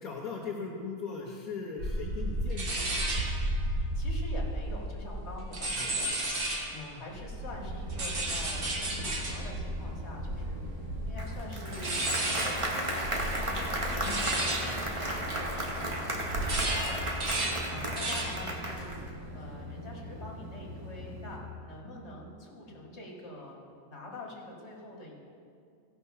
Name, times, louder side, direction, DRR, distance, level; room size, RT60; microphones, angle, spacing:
voice 1, 0.0-3.0 5.8-5.9 6.7-7.0 14.1-14.7 17.7-18.0, left 5 dB, 70° left, -4 dB, 1.5 m, -40 dB
sound 1, 1.8-6.8 7.1-15.8 16.2-18.5 18.8-19.2, right 1 dB, 40° right, 1.4 m, -33 dB
voice 2, 3.9-6.1 6.7-17.1 17.6-18.9 19.3-23.6 23.9-25.2, left 1 dB, 45° left, -2 dB, 2.1 m, -45 dB
sound 2, 7.4-21.4, left 1 dB, 60° right, 2.1 m, -42 dB
Applause, 11.2-19.1, right 1 dB, 25° right, 1.0 m, -35 dB
15.5 x 5.9 x 5.6 m, 2.3 s
omnidirectional pair, 1.6 m